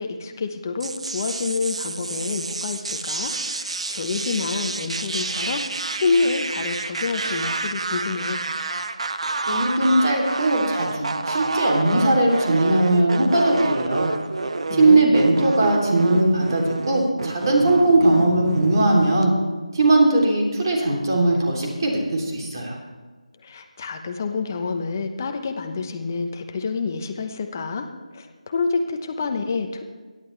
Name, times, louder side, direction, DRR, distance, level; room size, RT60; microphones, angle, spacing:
voice 1, 0.0-5.6 5.9-8.4 14.7-15.1 23.4-27.9 28.1-29.8, left 4 dB, 25° left, 5 dB, 1.0 m, -27 dB
sound 1, 0.8-19.2, right 3 dB, 55° right, 0.8 m, -29 dB
voice 2, 9.5-14.1 14.7-19.3 19.7-22.8, right 2 dB, 35° right, -1 dB, 3.2 m, -19 dB
24.0 x 11.0 x 3.4 m, 1.4 s
figure-of-eight pair, 170°, 4 cm